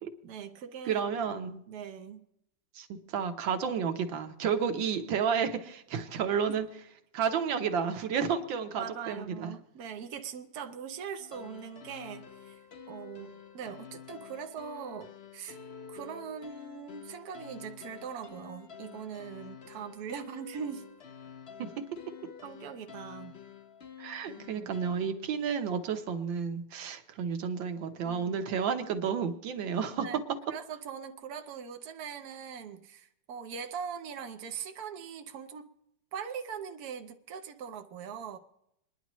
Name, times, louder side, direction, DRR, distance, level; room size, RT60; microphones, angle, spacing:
voice 1, 0.2-1.1 1.7-2.2 6.5-6.6 8.8-12.6 12.9-15.6 15.9-20.8 22.4-23.4 24.3-24.9 28.0-28.4 30.0-30.2 30.5-35.7 36.1-38.4, right 7 dB, 60° right, 5 dB, 1.3 m, -41 dB
voice 2, 0.9-1.6 2.7-6.7 7.1-9.5 21.6-21.7 24.0-30.2, right 7 dB, 90° right, 7 dB, 1.7 m, -31 dB
sound 1, 11.2-24.9, left 7 dB, 45° left, 0.9 m, -49 dB
28.0 x 10.5 x 3.1 m, 0.79 s
omnidirectional pair, 2.0 m